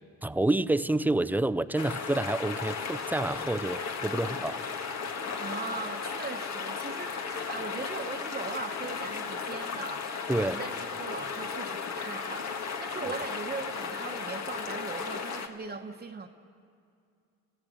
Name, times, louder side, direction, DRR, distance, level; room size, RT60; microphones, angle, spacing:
voice 1, 0.2-4.6 10.3-10.6, right 2 dB, 5° right, 13 dB, 0.5 m, -28 dB
sound 1, 1.8-15.5, left 5 dB, 60° left, 1.6 m, -35 dB
Laughter, 4.8-5.5 5.8-10.8, left 3 dB, 80° left, 6.6 m, -57 dB
voice 2, 5.4-16.3, right 4 dB, 30° right, 2 dB, 1.1 m, -40 dB
30.0 x 15.5 x 6.3 m, 2.4 s
cardioid pair, 90°, 30 cm